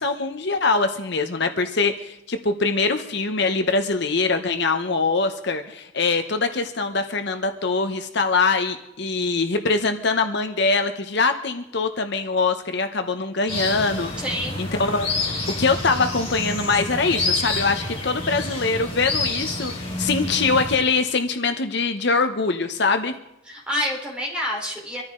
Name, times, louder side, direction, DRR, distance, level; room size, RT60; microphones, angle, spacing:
voice 1, 0.0-14.1 14.6-15.1 15.6-23.1, left 4 dB, 55° left, 7 dB, 0.9 m, -23 dB
sound 1, 13.5-20.8, left 2 dB, 25° left, 4.4 m, -28 dB
voice 2, 14.2-14.6 23.5-25.0, left 1 dB, 5° right, -3 dB, 3.8 m, -28 dB
24.5 x 14.0 x 3.8 m, 0.89 s
head